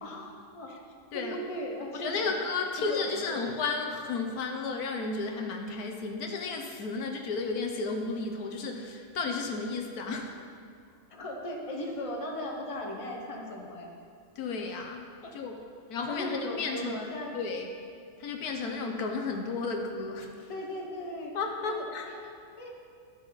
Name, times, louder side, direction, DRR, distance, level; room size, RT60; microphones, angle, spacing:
voice 1, 0.0-0.7 1.1-2.3 2.8-3.4 11.1-13.9 15.2-15.3 16.1-17.4 20.5-21.3 21.6-22.3 22.6-22.7, left 1 dB, 25° left, -1 dB, 1.1 m, -37 dB
voice 2, 1.9-10.3 14.4-15.1 15.3-15.6 15.9-17.7 18.2-20.5 21.3-22.1, left 4 dB, 75° left, 3 dB, 1.3 m, -33 dB
12.0 x 7.3 x 4.0 m, 2.3 s
omnidirectional pair, 1.7 m